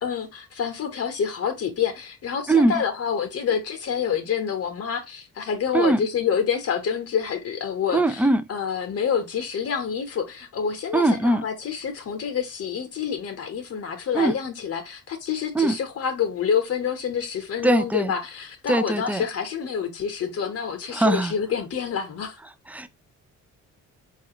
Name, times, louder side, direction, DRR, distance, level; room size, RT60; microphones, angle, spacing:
voice 1, 0.0-8.2 8.5-22.4, left 7 dB, 50° left, 0.8 m, -27 dB
voice 2, 2.5-2.8 5.7-6.0 7.9-8.4 10.9-11.5 14.1-14.4 15.5-15.8 17.6-18.1 18.7-19.2 20.9-21.3 22.7-22.9, right 2 dB, 5° right, 0.3 m, -21 dB
4.1 x 2.4 x 2.8 m
cardioid pair, 90°, 30 cm